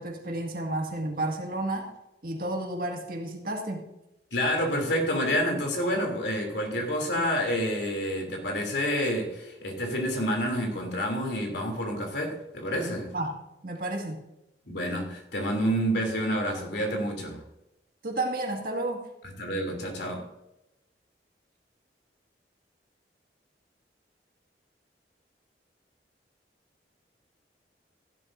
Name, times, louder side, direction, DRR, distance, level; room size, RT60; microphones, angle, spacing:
voice 1, 0.0-1.9 2.2-3.9 13.1-13.4 13.6-14.2 18.0-19.1, right 2 dB, 55° right, 2 dB, 2.0 m, -31 dB
voice 2, 4.3-13.1 14.6-17.4 19.4-20.2, equal, 75° left, 2 dB, 3.0 m, -28 dB
15.5 x 11.0 x 2.6 m, 0.90 s
head